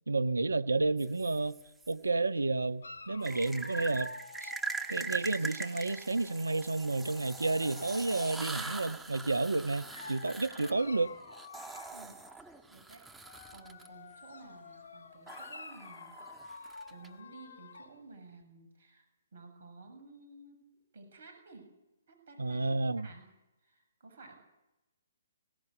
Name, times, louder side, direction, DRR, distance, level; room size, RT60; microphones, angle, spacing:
voice 1, 0.1-1.6 1.9-4.1 4.4-4.5 4.9-11.2 22.4-23.1, right 3 dB, 85° right, 14 dB, 1.0 m, -31 dB
sound 1, 1.0-1.9 3.2-13.9 15.3-17.1, right 3 dB, 5° right, 1.5 m, -42 dB
Dog, 2.8-6.2 7.0-9.0 9.8-12.4 13.1-18.0, left 4 dB, 65° left, 3.1 m, -50 dB
voice 2, 11.9-16.1 16.6-19.1 19.3-20.7 20.9-21.7 22.1-23.3 23.6-24.3, right 3 dB, 60° right, 6 dB, 7.4 m, -54 dB
24.5 x 17.5 x 8.0 m, 0.96 s
figure-of-eight pair, 135°, 0 cm